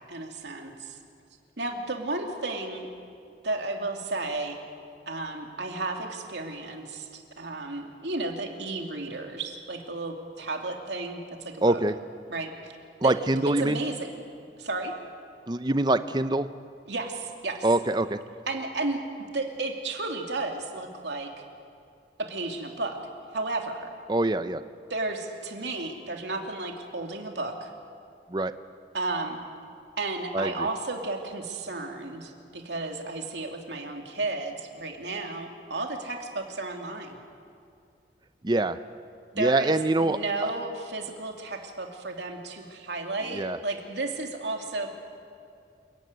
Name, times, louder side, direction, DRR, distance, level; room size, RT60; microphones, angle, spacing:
voice 1, 0.1-1.0 1.6-2.9 3.4-4.6 5.1-11.8 12.3-12.7 13.0-13.2 13.6-14.1 14.6-14.9 16.9-17.6 18.5-19.0 19.3-21.4 22.2-23.0 23.3-23.9 24.9-27.7 28.9-29.4 30.0-37.2 39.4-44.9, right 2 dB, 75° right, 2 dB, 2.6 m, -33 dB
voice 2, 11.6-11.9 13.0-13.8 15.5-16.5 17.6-18.2 24.1-24.6 28.3-28.5 30.3-30.7 38.4-38.8 39.3-40.5 43.3-43.6, right 2 dB, 25° right, 11 dB, 0.6 m, -24 dB
28.0 x 14.5 x 9.5 m, 2.3 s
head